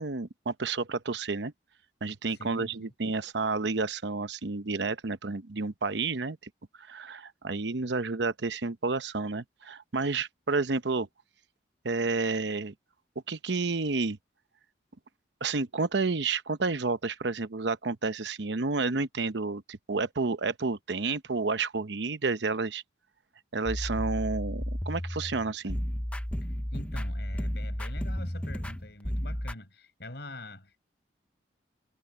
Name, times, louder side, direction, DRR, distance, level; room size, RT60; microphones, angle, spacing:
voice 1, 0.0-1.5 2.0-6.4 6.8-11.1 11.8-12.7 13.3-14.2 15.4-22.8 23.5-25.8, right 3 dB, 75° right, 0.9 m, -30 dB
voice 2, 2.3-2.9 26.4-30.8, left 1 dB, 65° left, 5.5 m, -45 dB
sound 1, 23.7-29.5, equal, 5° left, 0.7 m, -33 dB
head